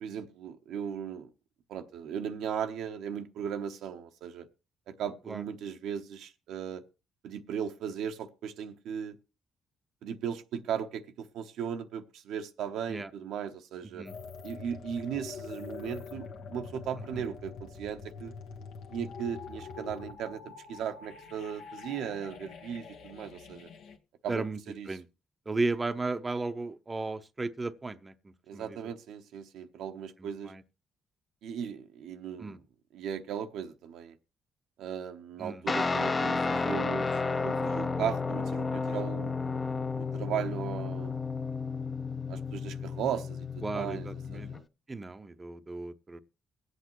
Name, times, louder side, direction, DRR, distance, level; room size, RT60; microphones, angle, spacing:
voice 1, 0.0-1.3 1.7-4.5 4.9-6.8 7.2-9.2 10.0-14.1 14.4-18.3 18.9-23.7 24.2-24.9 28.5-30.5 31.4-32.6 32.9-34.2 34.8-37.1 37.4-39.3 40.0-41.2 42.3-44.6, right 8 dB, 85° right, 0.8 m, -37 dB
sound 1, 14.1-24.0, left 5 dB, 80° left, 1.3 m, -45 dB
voice 2, 24.3-24.6 24.9-25.0 25.5-28.1 28.5-28.8 30.2-30.6 32.4-32.6 35.4-35.6 43.6-44.5 44.9-46.2, right 3 dB, 25° right, 0.6 m, -35 dB
Guitar, 35.7-44.6, left 4 dB, 30° left, 0.6 m, -32 dB
23.5 x 8.0 x 3.0 m
cardioid pair, 90°, 0 cm